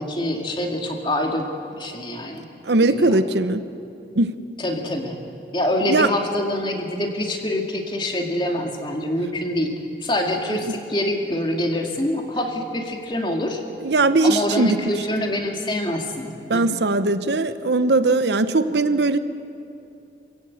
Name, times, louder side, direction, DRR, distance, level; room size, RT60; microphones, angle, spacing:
voice 1, 0.0-2.5 2.9-3.2 4.6-5.2 5.5-9.7 10.0-13.6 14.2-16.8, left 1 dB, 25° left, 2 dB, 2.3 m, -25 dB
voice 2, 2.6-3.6 4.1-4.3 5.9-6.1 10.5-10.6 13.8-14.8 16.5-19.2, right 2 dB, 75° right, 11 dB, 0.9 m, -19 dB
27.0 x 16.0 x 8.6 m, 2.7 s
head